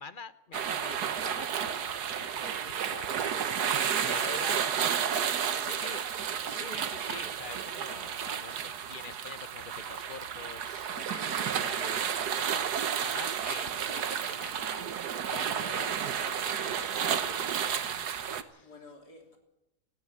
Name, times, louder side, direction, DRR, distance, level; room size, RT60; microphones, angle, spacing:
voice 1, 0.0-4.6 5.6-6.0 6.4-14.9 15.3-18.7, left 5 dB, 45° left, 0.7 m, -46 dB
sound 1, 0.5-18.4, right 8 dB, 85° right, 1.6 m, -32 dB
voice 2, 3.4-4.5 5.1-6.0 6.3-6.8 16.2-16.5 18.6-19.4, equal, 85° left, 4.0 m, -48 dB
18.0 x 15.0 x 9.5 m
omnidirectional pair, 1.7 m